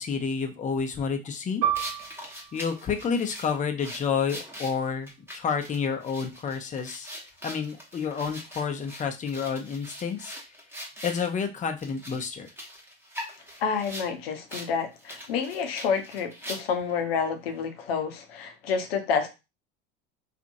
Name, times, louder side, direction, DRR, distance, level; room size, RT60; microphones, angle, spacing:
voice 1, 0.0-1.6 2.5-7.1 7.4-10.3 11.0-12.5, left 6 dB, 25° left, 5 dB, 0.6 m, -29 dB
Piano, 1.6-6.7 7.0-7.2 7.9-8.3, right 10 dB, 70° right, 1.1 m, -35 dB
sound 1, 1.7-11.3 11.8-14.1 14.5-14.7 15.0-16.9, equal, 10° right, 0.9 m, -42 dB
voice 2, 13.6-19.3, left 6 dB, 85° left, 6 dB, 0.7 m, -29 dB
2.8 x 2.5 x 2.6 m, 0.26 s
hypercardioid pair, 85°, 29 cm